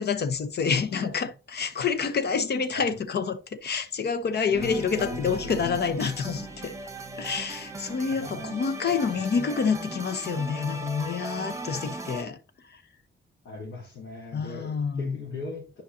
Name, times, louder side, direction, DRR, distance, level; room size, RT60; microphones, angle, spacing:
voice 1, 0.0-6.7 7.2-12.4 12.6-12.8 14.3-15.2, left 6 dB, 60° left, 0.8 m, -28 dB
voice 2, 2.4-2.8 4.5-5.7 8.2-8.4 8.8-8.9 13.4-15.8, left 4 dB, 90° left, 3.3 m, -39 dB
sound 1, 4.5-12.2, right 2 dB, 15° right, 0.9 m, -38 dB
10.0 x 5.2 x 2.7 m
wide cardioid pair, 125°, 19 cm